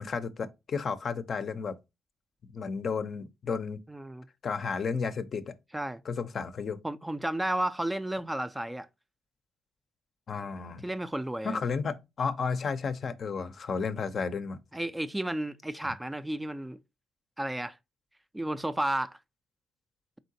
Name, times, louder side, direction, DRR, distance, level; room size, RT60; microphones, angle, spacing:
voice 1, 0.0-1.8 2.5-3.8 4.4-5.5 6.1-6.8 10.3-10.9 11.4-14.6 15.8-15.9, left 5 dB, 50° left, 0.5 m, -32 dB
voice 2, 3.9-4.3 5.7-6.0 6.8-8.9 10.8-11.6 14.7-16.8 17.4-17.8 18.3-19.2, right 1 dB, 10° right, 0.3 m, -32 dB
4.1 x 3.7 x 2.7 m
cardioid pair, 90°, 0 cm